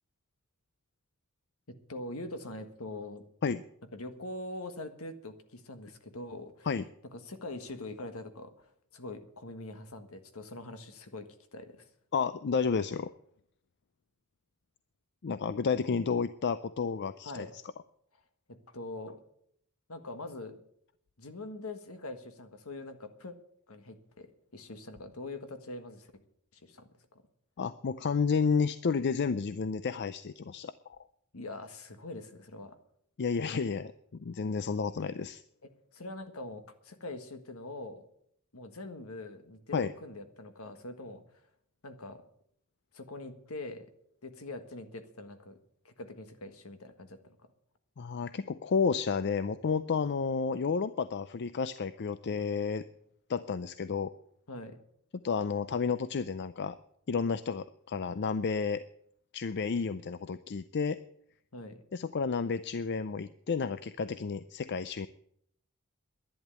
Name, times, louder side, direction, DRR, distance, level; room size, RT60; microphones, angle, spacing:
voice 1, 1.9-3.2 3.9-6.7 7.1-11.9 17.2-17.5 18.5-19.2 19.9-20.6 21.2-23.3 23.7-26.1 26.5-27.2 31.3-32.8 35.6-38.1 38.5-41.4 41.8-42.2 42.9-43.9 44.2-45.6 45.8-47.3 54.5-54.8 61.5-61.8, left 2 dB, 70° left, 9 dB, 1.6 m, -43 dB
voice 2, 12.1-13.1 15.2-17.5 27.6-30.7 33.2-33.9 34.2-35.4 39.7-39.9 48.0-52.8 53.3-54.1 55.2-56.8 57.1-58.8 59.3-61.0 61.9-65.1, left 5 dB, 50° left, 14 dB, 0.5 m, -31 dB
11.0 x 11.0 x 8.1 m, 0.68 s
head